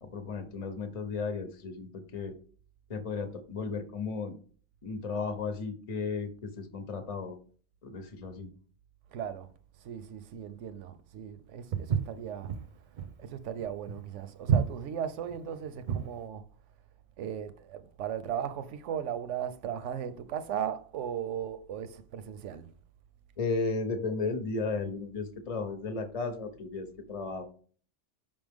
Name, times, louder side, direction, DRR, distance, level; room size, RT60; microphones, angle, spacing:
voice 1, 0.0-2.4 2.9-4.4 4.8-7.4 7.8-8.5 23.4-27.4, left 4 dB, 35° left, 0.8 m, -34 dB
voice 2, 9.1-16.8 17.2-22.7, right 9 dB, 85° right, 1.0 m, -37 dB
Walk footsteps, 11.7-16.2, right 7 dB, 50° right, 0.7 m, -30 dB
5.6 x 5.3 x 3.5 m
omnidirectional pair, 1.2 m